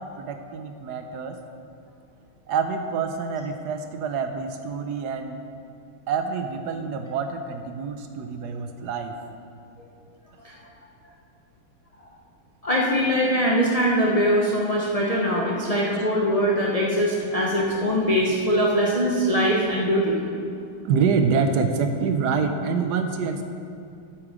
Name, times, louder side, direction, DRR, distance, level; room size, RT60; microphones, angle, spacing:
voice 1, 0.2-1.4 2.5-5.4 6.1-9.1 20.8-23.4, right 5 dB, 70° right, 6 dB, 1.0 m, -26 dB
voice 2, 12.6-20.2, equal, 35° left, -4 dB, 0.6 m, -22 dB
13.0 x 7.5 x 5.0 m, 2.5 s
omnidirectional pair, 2.3 m